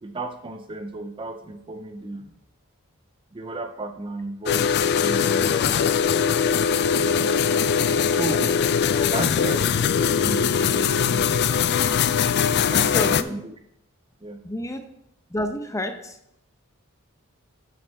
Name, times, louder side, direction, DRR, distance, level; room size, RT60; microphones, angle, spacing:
voice 1, 0.0-2.4 3.3-7.4 8.1-8.6 9.1-11.4 12.3-13.5 14.2-14.4, right 2 dB, 25° right, 7 dB, 0.5 m, -35 dB
sound 1, 4.5-13.2, left 7 dB, 50° left, 0.3 m, -21 dB
voice 2, 12.8-13.3 14.4-14.9 15.3-16.2, left 1 dB, 15° left, 7 dB, 0.7 m, -29 dB
11.0 x 6.0 x 3.4 m, 0.79 s
head